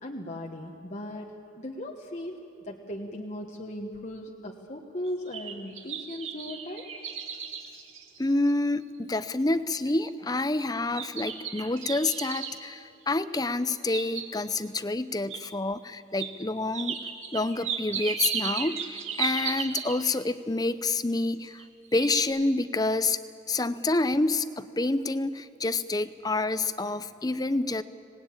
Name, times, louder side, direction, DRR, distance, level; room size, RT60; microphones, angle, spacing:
voice 1, 0.0-2.4 2.6-6.9, left 1 dB, 35° left, 1 dB, 1.3 m, -37 dB
sound 1, 5.1-8.6 9.1-9.2 9.7-10.1 10.9-12.6 13.6-14.6 15.3-15.4 16.2-16.3 16.7-20.2 21.2-21.7 21.9-22.2, right 7 dB, 85° right, 2.4 m, -34 dB
voice 2, 8.2-17.0 17.3-21.6 21.9-23.2 23.5-27.8, left 2 dB, 20° left, 13 dB, 0.6 m, -28 dB
26.5 x 19.5 x 8.8 m, 3.0 s
head